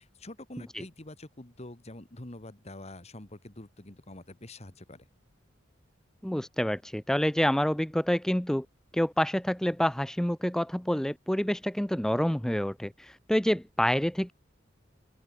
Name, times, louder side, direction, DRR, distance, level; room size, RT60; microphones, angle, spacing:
voice 1, 0.0-5.1, left 1 dB, 35° left, 1.8 m, -46 dB
voice 2, 6.2-8.7 8.9-14.3, equal, 5° left, 0.4 m, -27 dB
open air
head